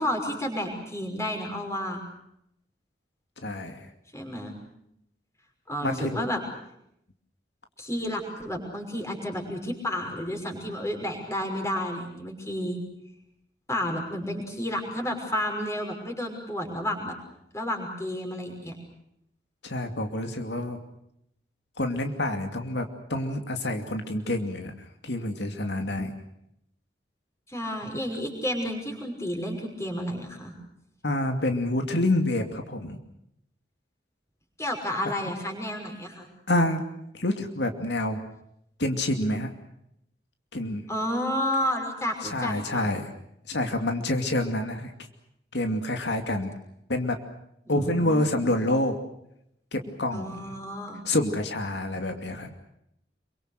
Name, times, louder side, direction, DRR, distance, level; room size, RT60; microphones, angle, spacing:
voice 1, 0.0-2.0 4.1-4.5 5.7-6.4 7.8-12.8 13.7-17.1 17.5-18.8 27.5-30.5 34.6-36.3 40.9-42.9 47.7-48.4 50.1-51.0, left 1 dB, 15° left, 3 dB, 5.8 m, -31 dB
voice 2, 3.4-3.9 5.8-6.2 19.6-20.8 21.8-22.8 23.1-24.7 25.0-26.1 31.0-33.0 36.5-36.8 37.1-38.2 38.8-39.5 40.5-40.8 42.2-43.1 43.5-44.9 45.5-46.5 46.9-47.2 47.7-49.0 49.7-50.6 51.0-52.5, left 1 dB, 85° left, 5 dB, 2.6 m, -27 dB
27.0 x 24.5 x 6.6 m, 0.77 s
head